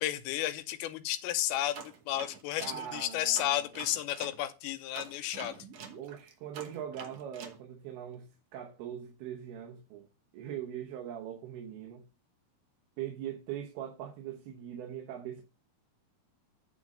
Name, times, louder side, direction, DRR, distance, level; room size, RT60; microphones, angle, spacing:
voice 1, 0.0-5.7, left 13 dB, 80° left, 2.6 m, -33 dB
sound 1, 1.7-4.4 4.9-7.6, right 6 dB, 65° right, 1.6 m, -46 dB
voice 2, 2.6-3.6 6.0-10.1 10.3-12.1 13.0-15.4, right 10 dB, 85° right, 3.1 m, -41 dB
9.6 x 3.8 x 6.4 m
omnidirectional pair, 4.4 m